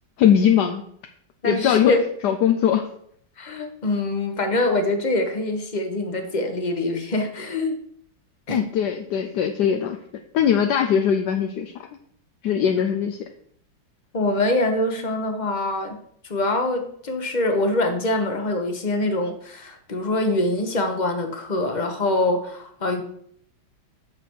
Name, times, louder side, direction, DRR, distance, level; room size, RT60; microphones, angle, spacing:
voice 1, 0.2-0.8 1.4-1.9 2.2-2.9 8.5-10.0 10.3-11.7 12.4-13.2, left 8 dB, 70° left, 5 dB, 1.1 m, -20 dB
voice 2, 1.4-2.0 3.4-7.8 8.5-8.6 14.1-16.0 16.3-23.0, left 2 dB, 30° left, 5 dB, 0.9 m, -24 dB
8.8 x 6.8 x 4.6 m, 0.66 s
omnidirectional pair, 2.2 m